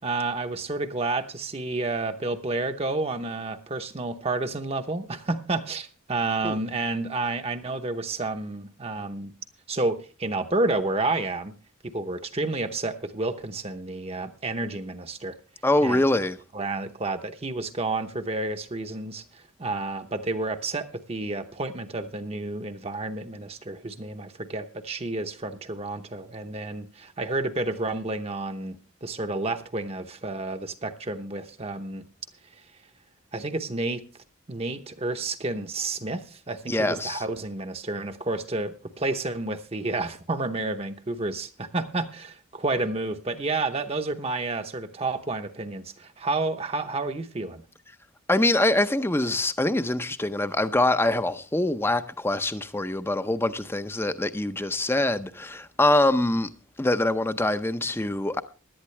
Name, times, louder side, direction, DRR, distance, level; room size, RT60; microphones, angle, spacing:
voice 1, 0.0-9.3 9.7-11.5 11.8-15.3 15.8-16.0 16.5-28.8 29.0-32.0 33.3-34.0 34.5-47.6, right 2 dB, 30° right, 0.8 m, -30 dB
voice 2, 15.6-16.4 36.7-37.2 48.3-56.5 56.8-58.4, left 1 dB, 10° left, 0.5 m, -24 dB
17.0 x 11.0 x 3.2 m
head